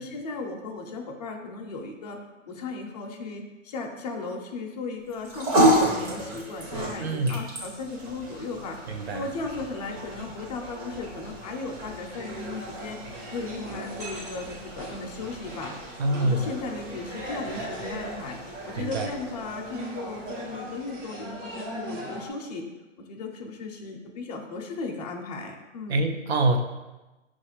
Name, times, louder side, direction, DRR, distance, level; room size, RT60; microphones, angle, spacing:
voice 1, 0.0-2.2 2.5-13.0 13.3-15.7 16.1-18.4 18.6-22.6 23.0-26.0, left 3 dB, 35° left, 1 dB, 0.4 m, -36 dB
sound 1, 5.1-21.6, equal, 30° right, 0.8 m, -32 dB
voice 2, 7.0-7.4 8.9-9.2 16.0-16.5 18.8-19.1 25.9-26.6, right 2 dB, 55° right, 5 dB, 0.5 m, -25 dB
sound 2, 12.1-22.3, right 1 dB, 70° right, 1.2 m, -39 dB
5.7 x 2.4 x 2.9 m, 1.1 s
hypercardioid pair, 145°, 38 cm